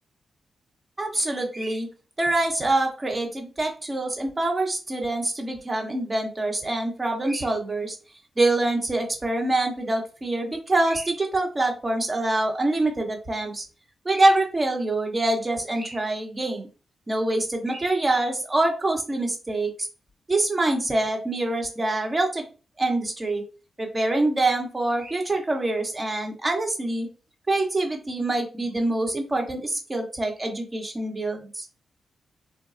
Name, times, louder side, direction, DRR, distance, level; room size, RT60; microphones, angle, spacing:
voice 1, 1.0-1.9 2.2-8.0 8.4-13.6 14.0-16.7 17.1-19.7 20.3-22.4 22.8-23.4 23.8-27.1 27.5-31.6, right 2 dB, 30° right, 2 dB, 1.0 m, -25 dB
3.1 x 2.2 x 2.5 m, 0.33 s
supercardioid pair, 40°, 0 cm